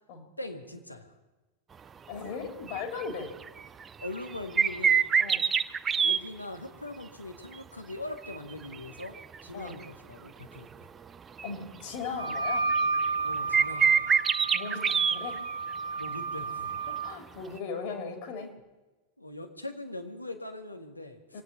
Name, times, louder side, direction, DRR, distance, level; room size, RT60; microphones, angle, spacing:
voice 1, 0.4-1.1 4.0-5.1 6.0-10.9 13.2-14.1 16.0-16.8 19.2-21.4, left 2 dB, 85° left, 5 dB, 1.7 m, -41 dB
voice 2, 2.1-3.4 5.2-5.4 9.5-9.8 11.4-12.7 14.5-15.4 16.9-18.5 21.3-21.4, left 5 dB, 50° left, 4 dB, 2.9 m, -38 dB
sound 1, 2.7-3.0 3.4-6.2 8.2-9.4 9.8-9.9 11.4-11.5 12.0-13.2 13.5-15.7 16.0-16.1 17.6-17.7, right 6 dB, 20° right, 0.5 m, -25 dB
Wind instrument woodwind instrument, 12.2-17.1, right 4 dB, 70° right, 0.7 m, -32 dB
24.0 x 9.3 x 5.9 m, 1.1 s
figure-of-eight pair, 90°, 0 cm